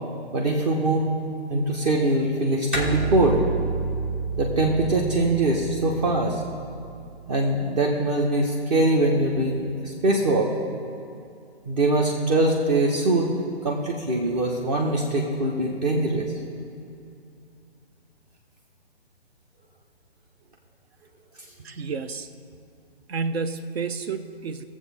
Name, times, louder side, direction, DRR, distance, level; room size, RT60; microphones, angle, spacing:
voice 1, 0.3-1.1 1.5-3.4 4.4-6.4 7.3-10.5 11.7-13.3 13.6-16.3, right 2 dB, 40° right, 0 dB, 1.1 m, -22 dB
sound 1, 2.7-7.5, right 3 dB, 10° right, 0.3 m, -31 dB
voice 2, 21.6-22.3 23.1-24.6, right 4 dB, 70° right, 11 dB, 0.8 m, -30 dB
18.0 x 7.4 x 3.5 m, 2.5 s
hypercardioid pair, 140°, 32 cm